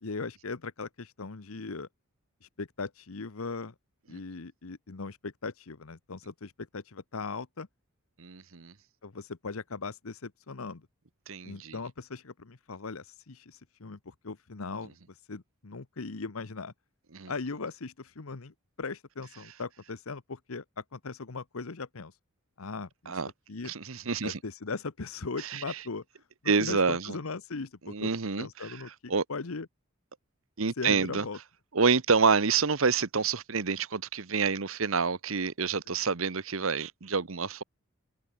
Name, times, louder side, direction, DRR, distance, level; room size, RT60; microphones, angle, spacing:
voice 1, 0.0-1.9 2.4-3.7 4.1-7.7 9.0-10.8 11.4-16.7 17.3-22.1 22.6-23.7 24.2-26.0 26.4-28.1 28.4-29.7 30.8-31.4, left 4 dB, 80° left, 1.0 m, -39 dB
voice 2, 8.2-8.7 11.3-11.7 17.1-17.3 23.1-23.3 23.6-24.4 25.4-25.6 26.5-27.2 27.9-28.5 29.1-29.2 30.6-31.2 31.7-37.6, right 5 dB, 70° right, 1.1 m, -28 dB
head